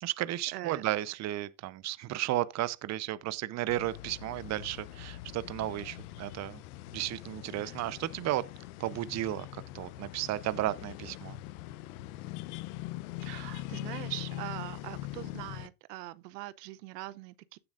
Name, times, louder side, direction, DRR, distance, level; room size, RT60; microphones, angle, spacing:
voice 1, 0.0-6.6 6.9-8.4 8.8-11.4, right 15 dB, 35° right, 0.7 m, -34 dB
voice 2, 0.5-0.8 7.6-7.8 13.2-17.6, right 18 dB, 75° right, 0.8 m, -42 dB
sound 1, 3.7-15.7, left 16 dB, 65° left, 0.8 m, -42 dB
16.0 x 7.0 x 2.5 m
hypercardioid pair, 100°, 49 cm